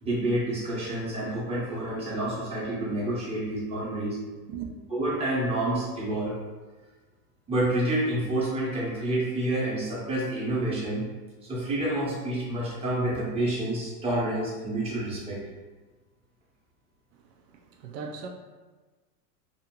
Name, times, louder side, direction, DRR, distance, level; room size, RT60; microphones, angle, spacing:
voice 1, 0.0-4.2 4.9-6.4 7.5-11.0 11.5-15.4, right 1 dB, 10° right, -6 dB, 0.7 m, -28 dB
voice 2, 17.5-18.3, right 6 dB, 75° right, 3 dB, 0.5 m, -38 dB
2.5 x 2.1 x 2.9 m, 1.2 s
supercardioid pair, 120°, 48 cm